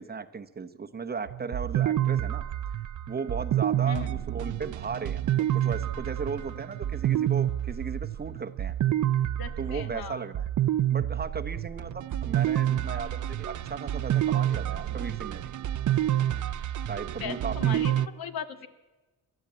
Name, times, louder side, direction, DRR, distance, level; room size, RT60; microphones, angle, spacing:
voice 1, 0.0-2.4 3.1-8.7 9.6-10.5 10.9-15.5 16.9-17.9, right 5 dB, 25° right, 9 dB, 0.9 m, -36 dB
sound 1, 1.3-18.1, right 12 dB, 55° right, 0.7 m, -28 dB
sound 2, 3.8-8.1, right 14 dB, 90° right, 1.0 m, -45 dB
voice 2, 9.4-10.2 17.2-18.7, left 8 dB, 70° left, 8 dB, 1.9 m, -38 dB
28.0 x 12.0 x 8.6 m, 1.2 s
cardioid pair, 150°, 37 cm